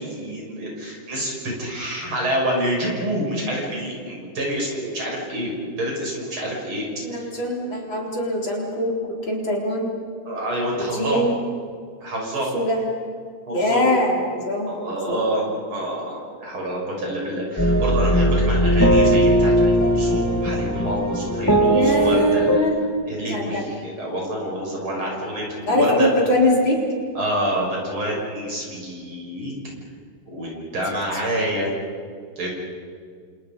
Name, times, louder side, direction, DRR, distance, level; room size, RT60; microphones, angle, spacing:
voice 1, 0.0-6.8 7.1-7.3 10.3-11.2 12.0-12.6 13.5-13.9 14.7-22.5 23.1-26.1 27.1-29.5 30.3-31.7 32.4-32.5, right 1 dB, 80° right, -2 dB, 7.8 m, -27 dB
voice 2, 7.0-9.9 10.7-11.3 12.5-12.8 13.5-14.7 15.1-15.2 21.6-22.7 23.3-23.6 25.7-26.8, left 1 dB, 65° left, -1 dB, 4.9 m, -22 dB
sound 1, 17.6-22.6, right 1 dB, 10° left, 1.7 m, -18 dB
30.0 x 26.5 x 5.4 m, 2.1 s
omnidirectional pair, 2.3 m